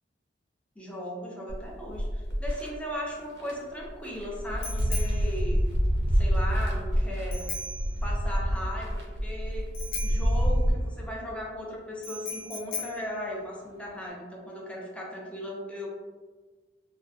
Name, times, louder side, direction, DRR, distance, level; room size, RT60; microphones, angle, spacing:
voice 1, 0.8-5.7 6.1-7.5 8.0-9.7 10.0-15.9, equal, 5° left, -3 dB, 0.5 m, -37 dB
sound 1, 1.5-2.7 3.4-3.5 3.8-10.7, equal, 65° right, 0.6 m, -27 dB
Bicycle bell, 2.9-14.1, left 3 dB, 55° left, 0.5 m, -41 dB
2.4 x 2.3 x 2.4 m, 1.4 s
head